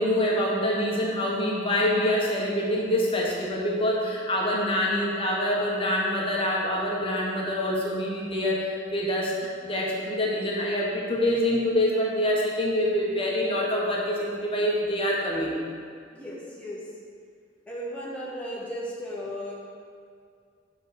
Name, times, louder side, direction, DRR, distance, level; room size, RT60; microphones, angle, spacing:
voice 1, 0.0-15.6, left 1 dB, 30° left, -3 dB, 1.1 m, -26 dB
voice 2, 16.1-16.8 17.7-19.5, equal, 5° left, -7 dB, 1.0 m, -35 dB
6.8 x 4.0 x 6.3 m, 2.2 s
head